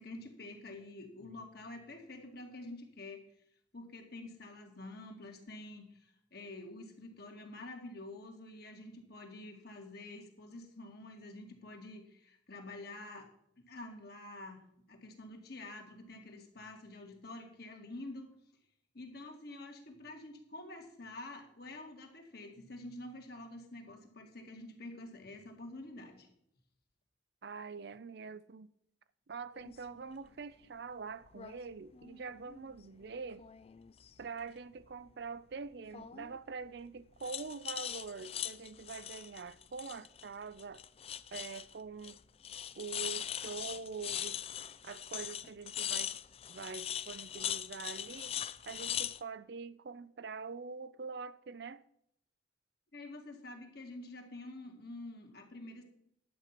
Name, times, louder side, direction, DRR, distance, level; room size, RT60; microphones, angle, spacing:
voice 1, 0.0-3.2 3.7-13.3 13.6-14.6 14.9-18.3 18.9-26.3 52.9-55.8, left 2 dB, 55° left, 2.1 m, -48 dB
voice 2, 27.4-28.7 29.3-33.4 34.2-40.8 41.3-42.2 42.8-44.4 44.8-46.1 46.5-48.4 48.6-51.8, right 5 dB, 55° right, 0.5 m, -44 dB
sound 1, 29.6-29.8 31.3-31.5 31.9-32.8 33.3-34.2 35.9-36.4 37.2-40.3 40.6-41.7 42.0-42.2 42.4-49.2, left 10 dB, 30° left, 0.3 m, -41 dB
11.0 x 8.3 x 5.8 m
head